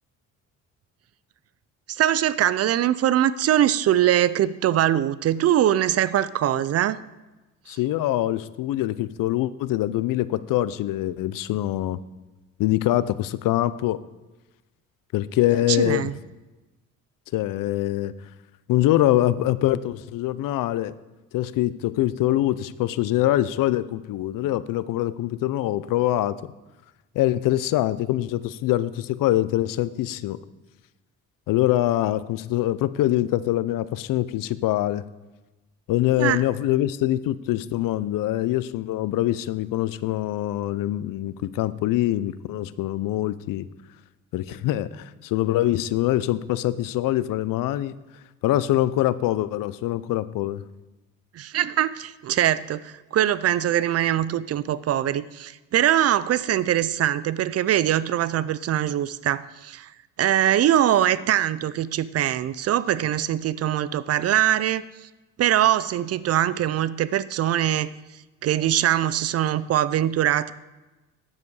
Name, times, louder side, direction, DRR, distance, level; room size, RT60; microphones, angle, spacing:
voice 1, 1.9-7.0 7.7-7.8 15.7-16.1 36.2-36.4 51.3-59.9 60.2-64.8 65.4-67.9 68.4-70.5, right 11 dB, 50° right, 17 dB, 0.4 m, -22 dB
voice 2, 7.7-12.0 12.6-14.0 15.1-16.1 17.3-18.3 18.7-20.9 21.3-26.5 27.1-30.4 31.5-35.0 35.9-43.7 44.3-47.9 48.4-50.6, left 14 dB, 75° left, 16 dB, 0.5 m, -24 dB
9.5 x 7.6 x 4.7 m, 1.1 s
cardioid pair, 110°, 33 cm